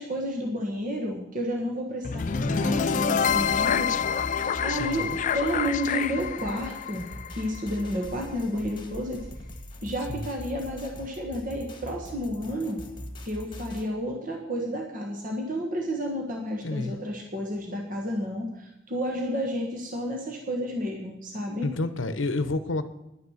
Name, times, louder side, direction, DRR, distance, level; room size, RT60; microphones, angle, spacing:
voice 1, 0.0-3.9 4.6-9.3 9.8-12.8 13.2-21.7, equal, 40° right, 1 dB, 1.5 m, -31 dB
sound 1, 2.0-8.1, left 7 dB, 40° left, 0.4 m, -27 dB
sound 2, 2.2-13.9, left 1 dB, 25° left, 1.6 m, -42 dB
voice 2, 4.8-5.2 10.1-10.3 16.6-16.9 21.6-22.8, left 2 dB, 70° left, 11 dB, 0.8 m, -29 dB
10.5 x 9.6 x 6.5 m, 0.90 s
head